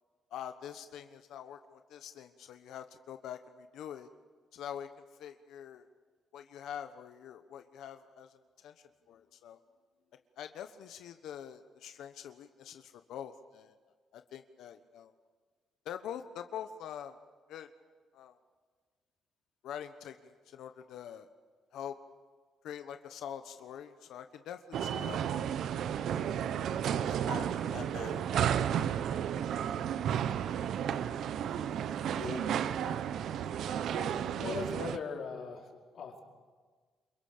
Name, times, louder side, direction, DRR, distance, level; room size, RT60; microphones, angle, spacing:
voice 1, 0.3-4.1 4.5-4.9 5.2-5.9 6.3-8.7 9.1-9.6 10.4-13.8 14.1-15.1 15.8-17.2 17.5-17.7 18.1-18.4 19.6-21.3 21.7-21.9 22.6-25.5 26.7-28.3, left 9 dB, 80° left, 8 dB, 1.2 m, -45 dB
sound 1, 24.7-35.0, right 9 dB, 75° right, 0.9 m, -32 dB
voice 2, 32.1-32.5 33.9-36.2, left 5 dB, 60° left, 0 dB, 4.8 m, -40 dB
28.0 x 23.5 x 6.8 m, 1.5 s
cardioid pair, 90°, 0 cm